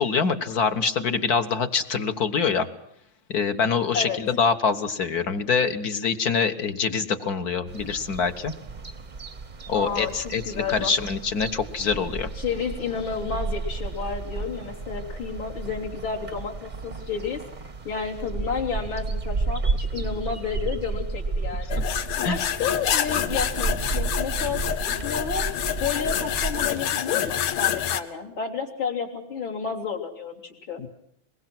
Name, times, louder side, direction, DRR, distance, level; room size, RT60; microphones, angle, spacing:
voice 1, 0.0-2.7 3.3-8.5 9.7-12.3 22.2-22.4 30.8-30.9, left 5 dB, 50° left, 9 dB, 1.6 m, -25 dB
sound 1, 7.7-26.7, right 3 dB, 35° right, 0.7 m, -32 dB
voice 2, 9.7-10.1 10.4-10.9 12.4-17.4 17.8-21.8 22.3-25.5 25.8-30.8, left 6 dB, 65° left, 0 dB, 4.0 m, -31 dB
sound 2, 21.7-28.0, left 10 dB, 85° left, 2.0 m, -27 dB
23.5 x 21.0 x 6.0 m, 0.76 s
omnidirectional pair, 2.3 m